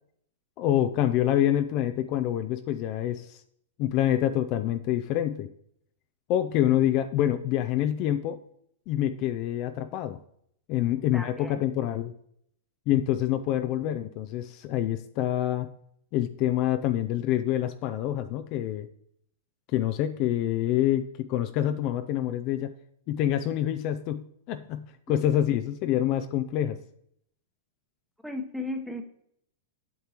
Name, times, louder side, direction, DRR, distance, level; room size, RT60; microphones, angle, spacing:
voice 1, 0.6-3.4 3.8-5.5 6.3-8.4 8.9-10.2 10.7-12.1 12.9-15.7 16.1-18.9 19.7-22.7 23.1-26.8, left 12 dB, 45° left, 9 dB, 0.4 m, -26 dB
voice 2, 10.8-11.6 28.2-29.0, left 2 dB, ahead, 5 dB, 1.0 m, -36 dB
8.1 x 6.6 x 2.9 m, 0.71 s
hypercardioid pair, 110°, 0 cm